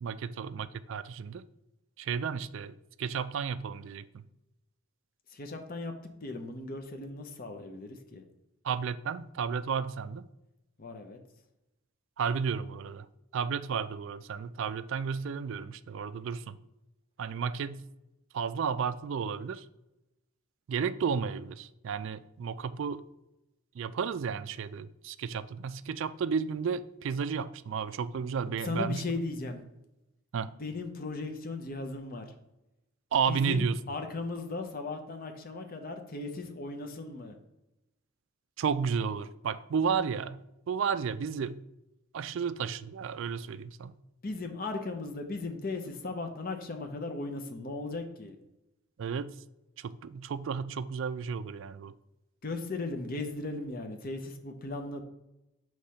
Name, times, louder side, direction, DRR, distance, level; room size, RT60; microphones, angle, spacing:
voice 1, 0.0-1.4 2.0-4.2 8.6-10.3 12.2-13.1 13.3-16.6 17.2-17.8 18.3-19.7 20.7-23.0 23.7-29.2 30.3-30.5 33.1-33.8 38.6-40.4 40.7-41.6 42.1-43.9 49.0-49.3 49.8-51.9, right 6 dB, 60° right, 0.3 m, -32 dB
voice 2, 5.3-5.9 6.2-8.2 10.8-11.2 28.4-29.6 30.6-32.3 33.3-37.4 44.2-48.3 52.4-55.0, left 3 dB, 40° left, 0.7 m, -37 dB
6.6 x 3.2 x 5.6 m
head